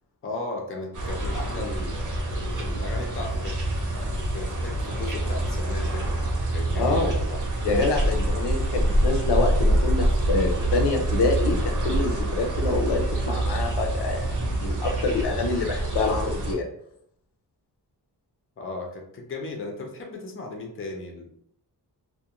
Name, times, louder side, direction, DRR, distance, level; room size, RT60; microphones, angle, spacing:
voice 1, 0.2-3.6 4.3-6.2 6.5-7.4 18.6-21.3, left 3 dB, 35° left, 1 dB, 0.5 m, -36 dB
sound 1, 0.9-16.5, right 1 dB, 50° right, 0.6 m, -26 dB
voice 2, 6.7-7.2 7.6-16.7, left 3 dB, 80° left, 3 dB, 0.5 m, -26 dB
2.4 x 2.1 x 2.9 m, 0.70 s
wide cardioid pair, 150°, 40 cm